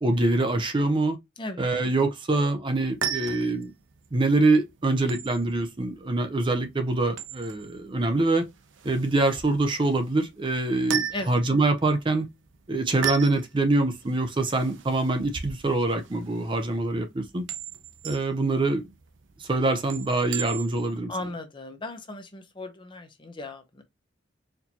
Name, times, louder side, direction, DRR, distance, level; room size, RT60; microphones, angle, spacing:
voice 1, 0.0-1.2 1.6-3.7 4.1-8.4 8.8-12.3 12.7-17.5 18.0-18.9 19.4-21.1, right 2 dB, 25° right, 0.5 m, -24 dB
sound 1, 2.7-21.0, right 8 dB, 90° right, 0.6 m, -37 dB
voice 2, 21.1-23.8, left 2 dB, 25° left, 0.6 m, -36 dB
4.4 x 2.7 x 2.8 m
head